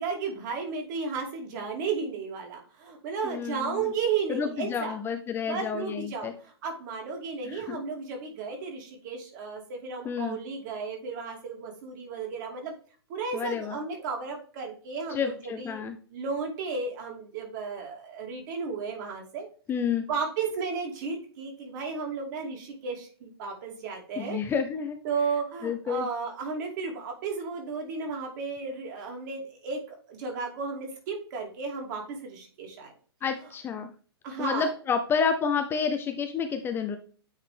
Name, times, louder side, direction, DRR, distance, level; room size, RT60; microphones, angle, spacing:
voice 1, 0.0-5.0 5.5-12.7 13.1-15.8 16.1-19.5 20.1-24.4 25.0-32.9 34.2-34.7, right 5 dB, 45° right, 2 dB, 2.7 m, -34 dB
voice 2, 3.2-3.9 4.3-6.3 7.4-7.8 10.0-10.4 13.3-13.8 15.1-16.0 19.7-20.0 24.2-25.0 25.6-26.1 33.2-33.9 34.4-37.0, left 6 dB, 15° left, 7 dB, 0.6 m, -29 dB
8.9 x 4.0 x 3.4 m, 0.42 s
hypercardioid pair, 125°, 14 cm